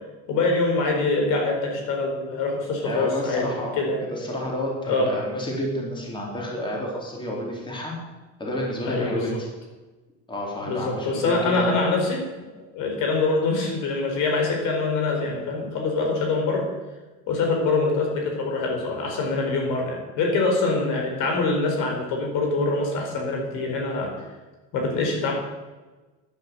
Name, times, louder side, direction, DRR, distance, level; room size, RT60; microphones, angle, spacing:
voice 1, 0.3-3.5 3.8-4.0 4.9-5.1 8.9-9.4 10.6-12.2 12.7-16.7 17.3-24.1 24.7-25.3, left 3 dB, 65° left, 2 dB, 4.6 m, -24 dB
voice 2, 2.8-3.8 4.1-7.9 8.4-9.5 10.3-11.7, equal, 15° left, -2 dB, 4.1 m, -30 dB
11.5 x 11.0 x 8.0 m, 1.2 s
cardioid pair, 130°, 33 cm